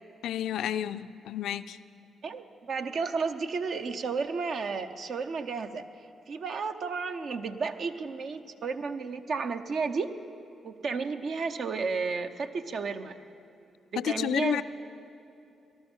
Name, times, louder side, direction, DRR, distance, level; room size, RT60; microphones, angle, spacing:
voice 1, 0.2-1.8 14.0-14.6, left 10 dB, 75° left, 13 dB, 0.3 m, -30 dB
voice 2, 2.2-5.9 6.3-10.1 10.6-13.2 13.9-14.6, right 4 dB, 65° right, 8 dB, 0.7 m, -32 dB
18.5 x 12.0 x 4.4 m, 2.8 s
hypercardioid pair, 50°, 0 cm